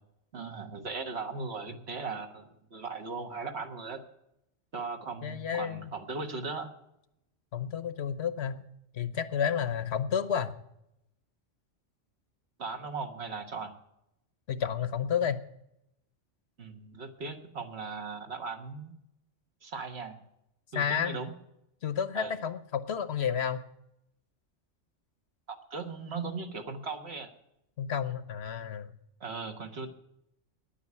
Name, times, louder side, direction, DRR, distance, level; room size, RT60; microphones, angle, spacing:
voice 1, 0.3-4.0 4.7-6.7 12.6-13.7 16.6-18.9 19.6-20.2 20.7-21.3 22.1-22.3 25.5-27.3 29.2-29.9, right 4 dB, 60° right, 5 dB, 1.6 m, -38 dB
voice 2, 5.2-5.9 7.5-8.6 8.9-10.5 14.5-15.4 20.7-21.2 21.8-23.6 27.8-28.9, left 8 dB, 65° left, 13 dB, 1.0 m, -31 dB
10.0 x 8.7 x 9.6 m, 0.82 s
omnidirectional pair, 1.3 m